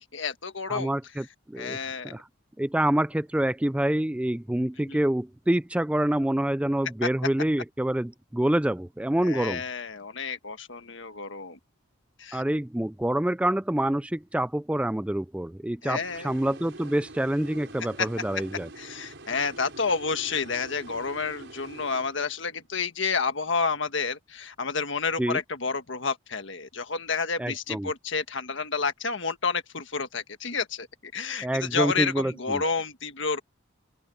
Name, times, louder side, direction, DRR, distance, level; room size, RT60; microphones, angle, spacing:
voice 1, 0.0-0.9 1.6-2.2 4.8-5.0 9.2-11.6 12.2-12.4 15.8-16.3 18.0-18.1 18.8-30.9 31.1-33.4, left 5 dB, 65° left, 1.6 m, -30 dB
voice 2, 0.7-2.3 2.6-9.6 12.3-18.7 25.2-25.4 27.4-27.9 31.4-32.6, right 1 dB, 5° right, 0.3 m, -27 dB
sound 1, 16.0-22.6, right 2 dB, 65° right, 5.3 m, -46 dB
open air
head